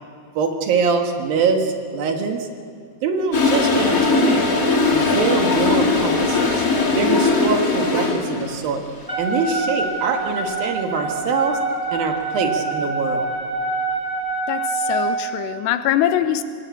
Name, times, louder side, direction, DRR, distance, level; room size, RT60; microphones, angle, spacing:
voice 1, 0.4-2.5 3.0-4.4 4.9-6.5 6.9-8.8 9.2-11.6 11.9-13.3, right 5 dB, 65° right, 4 dB, 3.1 m, -23 dB
Toilet flush, 3.3-8.6, left 3 dB, 30° left, 1.9 m, -19 dB
Wind instrument woodwind instrument, 9.1-15.1, right 3 dB, 5° right, 4.1 m, -25 dB
voice 2, 14.5-16.4, left 11 dB, 90° left, 10 dB, 3.1 m, -22 dB
25.5 x 18.5 x 8.5 m, 2.2 s
omnidirectional pair, 4.8 m